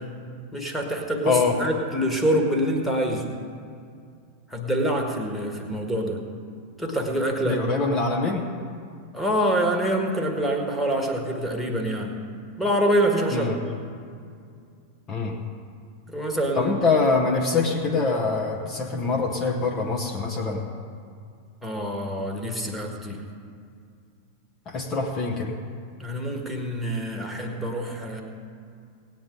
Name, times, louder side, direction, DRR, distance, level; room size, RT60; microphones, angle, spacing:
voice 1, 0.5-3.2 4.5-6.2 6.8-7.6 9.1-12.2 12.6-13.8 16.1-16.7 21.6-23.2 26.0-28.2, right 1 dB, ahead, 2 dB, 1.7 m, -26 dB
voice 2, 1.2-1.6 7.4-8.5 13.3-13.6 15.1-15.4 16.5-20.6 24.7-25.5, left 4 dB, 30° left, 0 dB, 1.2 m, -24 dB
18.5 x 9.2 x 3.9 m, 2.3 s
figure-of-eight pair, 90°, 0 cm